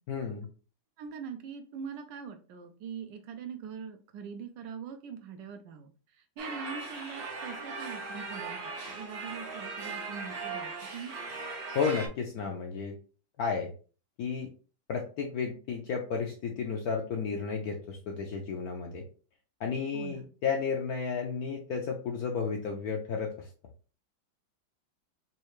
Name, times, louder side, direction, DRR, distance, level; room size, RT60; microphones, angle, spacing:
voice 1, 0.1-0.5 11.7-12.9 13.4-13.7 14.2-14.5 14.9-19.0 19.6-23.5, left 5 dB, 70° left, 2 dB, 0.9 m, -32 dB
voice 2, 1.0-8.6 8.9-11.1 19.9-20.3, right 6 dB, 75° right, 6 dB, 1.1 m, -43 dB
sound 1, 6.4-12.1, right 4 dB, 60° right, 0.6 m, -39 dB
4.2 x 2.3 x 3.0 m, 0.37 s
omnidirectional pair, 2.1 m